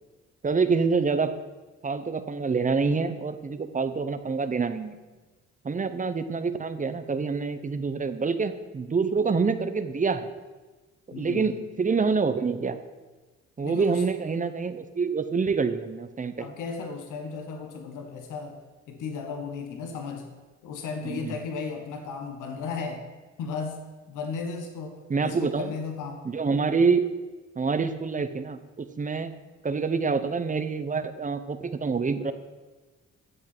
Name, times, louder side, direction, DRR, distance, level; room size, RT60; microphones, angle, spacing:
voice 1, 0.4-1.3 1.8-5.0 5.6-10.3 11.1-12.8 13.6-16.5 21.0-21.4 25.1-25.7 26.2-27.1 27.6-29.3 29.6-32.3, right 4 dB, 25° right, 11 dB, 0.8 m, -26 dB
voice 2, 11.1-11.6 13.6-14.0 16.4-18.6 18.9-20.3 20.6-23.0 23.4-23.8 24.1-26.3, left 5 dB, 85° left, 5 dB, 1.5 m, -35 dB
11.0 x 7.8 x 6.1 m, 1.3 s
cardioid pair, 90°, 30 cm